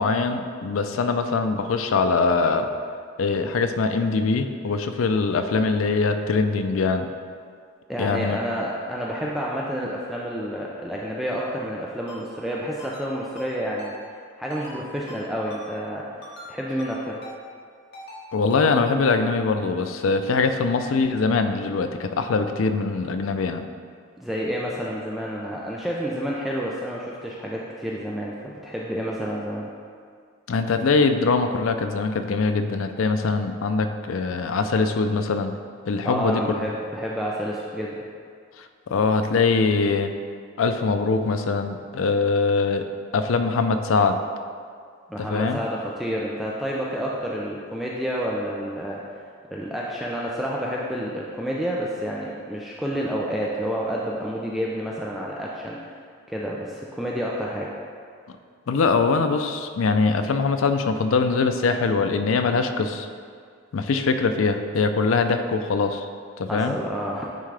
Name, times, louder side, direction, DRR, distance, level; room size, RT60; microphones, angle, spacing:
voice 1, 0.0-2.7 3.2-7.1 8.0-8.4 18.3-23.6 30.5-35.6 35.9-36.4 38.9-40.1 40.6-42.8 43.1-44.2 45.2-45.6 58.7-63.1 63.7-66.1 66.4-66.8, left 4 dB, 85° left, 7 dB, 0.4 m, -22 dB
voice 2, 7.9-13.9 14.4-16.1 16.5-17.2 24.2-29.7 36.0-38.0 45.1-49.1 49.5-55.9 56.3-57.8 66.5-67.3, equal, ahead, -4 dB, 0.4 m, -29 dB
Ringtone, 12.1-12.2 12.8-13.1 13.4-13.5 13.8-13.9 14.5-14.8 15.1-15.2 15.5-15.6 16.2-16.5 16.8-16.9 17.2-17.4 17.9-18.2 18.5-18.6, left 1 dB, 60° left, 1.4 m, -42 dB
9.2 x 3.7 x 3.3 m, 2.1 s
head